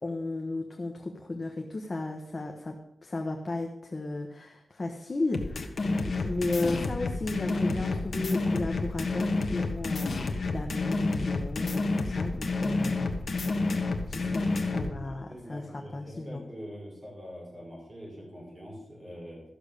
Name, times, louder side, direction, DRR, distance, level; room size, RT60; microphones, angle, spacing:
voice 1, 0.0-13.2 13.6-14.5 14.7-16.4, left 2 dB, 30° left, 2 dB, 1.1 m, -34 dB
sound 1, 5.3-14.9, left 3 dB, 55° left, 1.3 m, -29 dB
voice 2, 14.1-19.4, equal, 20° right, -4 dB, 5.3 m, -44 dB
13.5 x 6.9 x 6.7 m, 0.84 s
wide cardioid pair, 140°, 0 cm